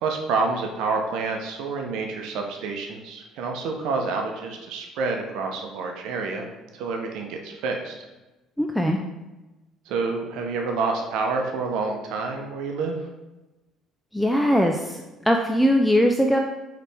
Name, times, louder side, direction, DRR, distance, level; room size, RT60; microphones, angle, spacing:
voice 1, 0.0-7.9 9.9-13.0, right 4 dB, 80° right, 2 dB, 0.7 m, -28 dB
voice 2, 8.6-9.0 14.1-14.9 15.3-16.4, equal, ahead, 3 dB, 0.3 m, -20 dB
4.8 x 3.3 x 3.3 m, 1.1 s
cardioid pair, 115°, 0 cm